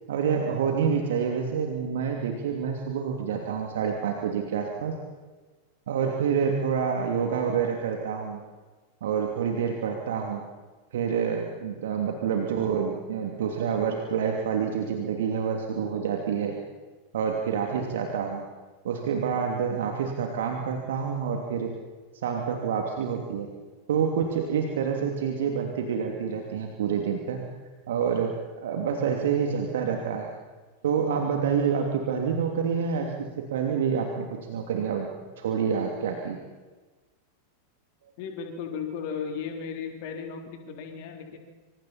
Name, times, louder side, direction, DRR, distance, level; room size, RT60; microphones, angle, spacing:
voice 1, 0.0-4.9 5.9-8.4 9.0-10.4 10.9-16.5 17.1-18.4 18.8-21.7 22.2-23.5 23.9-27.4 27.9-28.3 28.6-30.3 30.8-35.1 35.4-36.4, right 7 dB, 60° right, 2 dB, 2.8 m, -27 dB
voice 2, 38.2-41.4, left 6 dB, 50° left, 3 dB, 3.8 m, -35 dB
26.5 x 26.0 x 4.4 m, 1.3 s
figure-of-eight pair, 90°, 0 cm